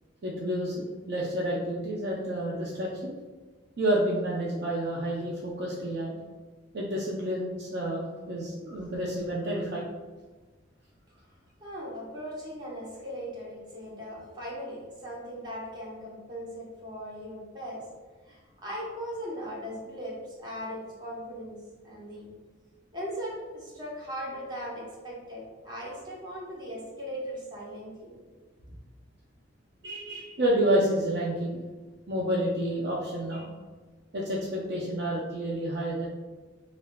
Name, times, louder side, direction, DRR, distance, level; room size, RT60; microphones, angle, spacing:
voice 1, 0.2-3.2 3.8-6.1 6.7-9.9 29.8-31.6 32.1-33.5 34.1-36.1, right 1 dB, 60° right, -4 dB, 0.5 m, -29 dB
voice 2, 11.6-17.8 18.3-21.6 21.8-22.3 22.9-28.2, equal, 25° right, -5 dB, 0.9 m, -39 dB
5.4 x 2.4 x 2.2 m, 1.3 s
head